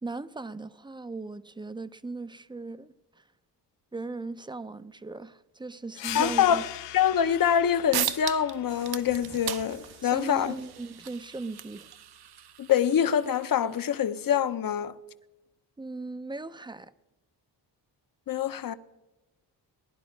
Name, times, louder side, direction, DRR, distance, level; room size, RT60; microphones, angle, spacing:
voice 1, 0.0-3.2 3.9-6.6 10.0-11.9 15.8-16.9, right 3 dB, 10° right, 0.4 m, -38 dB
sound 1, 6.0-11.1, left 15 dB, 85° left, 0.6 m, -42 dB
voice 2, 6.1-6.6 6.9-10.6 12.6-15.0 18.3-18.7, left 9 dB, 50° left, 0.7 m, -25 dB
sound 2, 7.6-7.7 7.9-8.6 8.8-14.0, right 10 dB, 60° right, 0.7 m, -37 dB
sound 3, 8.7-11.1, right 5 dB, 85° right, 1.5 m, -52 dB
18.0 x 11.0 x 5.1 m
wide cardioid pair, 120°, 42 cm